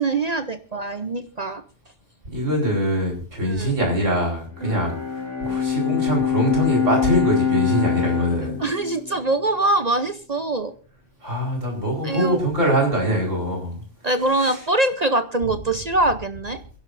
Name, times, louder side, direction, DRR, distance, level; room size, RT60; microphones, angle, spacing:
voice 1, 0.0-1.6 3.5-3.7 4.6-4.8 8.6-10.7 12.0-12.4 14.0-16.6, right 2 dB, 40° right, 9 dB, 0.8 m, -23 dB
voice 2, 2.3-8.6 11.2-13.8 14.4-14.6, equal, 85° right, 0 dB, 5.0 m, -23 dB
Bowed string instrument, 4.5-10.0, left 8 dB, 80° left, 5.0 m, -25 dB
27.0 x 11.5 x 2.6 m, 0.35 s
omnidirectional pair, 1.3 m